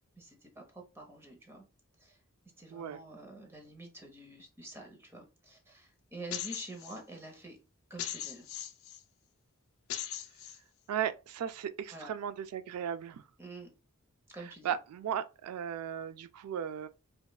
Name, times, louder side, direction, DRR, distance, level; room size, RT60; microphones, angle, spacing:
voice 1, 0.0-1.6 2.0-2.2 2.6-7.6 7.9-8.5 11.9-12.1 13.4-13.7 14.3-14.7, right 2 dB, 10° right, 0.8 m, -48 dB
voice 2, 2.7-3.0 10.9-13.3 14.4-16.9, right 9 dB, 90° right, 0.3 m, -36 dB
sound 1, 6.3-7.0 8.0-9.0 9.9-10.6, left 10 dB, 70° left, 0.5 m, -39 dB
5.1 x 2.3 x 2.3 m
head